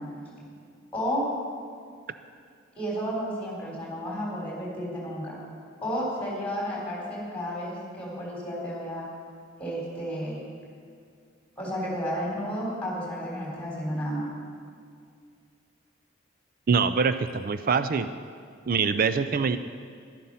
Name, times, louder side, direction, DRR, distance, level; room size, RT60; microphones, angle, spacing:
voice 1, 0.9-1.2 2.8-5.4 5.8-9.0 9.6-10.4 11.6-14.3, equal, 5° left, -4 dB, 3.9 m, -32 dB
voice 2, 16.7-18.1 18.7-19.6, right 5 dB, 45° right, 11 dB, 0.4 m, -24 dB
11.5 x 11.5 x 5.6 m, 2.2 s
head